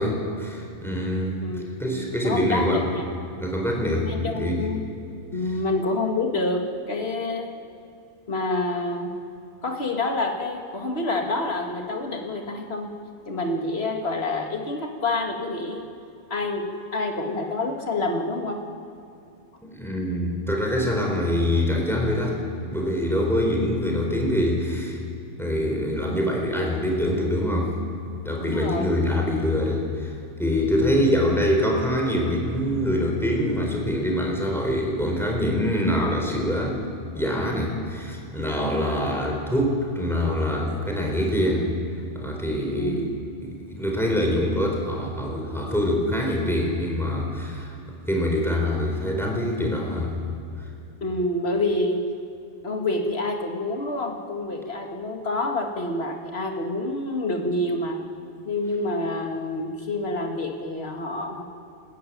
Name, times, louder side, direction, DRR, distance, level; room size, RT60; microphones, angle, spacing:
voice 1, 0.0-2.8 3.4-4.6 19.6-22.4 22.6-25.0 25.4-27.7 28.2-30.1 30.4-36.8 37.1-41.7 42.1-43.0 43.6-47.7 48.1-50.1, left 1 dB, ahead, 1 dB, 4.2 m, -24 dB
voice 2, 2.2-3.1 4.1-4.8 5.3-7.6 8.3-9.1 9.6-12.9 13.3-15.9 16.3-16.6 16.9-18.6 28.5-28.9 42.8-43.1 51.0-52.0 52.6-58.0 58.5-61.4, left 2 dB, 60° left, 2 dB, 2.4 m, -27 dB
28.5 x 13.5 x 9.4 m, 2.6 s
omnidirectional pair, 1.2 m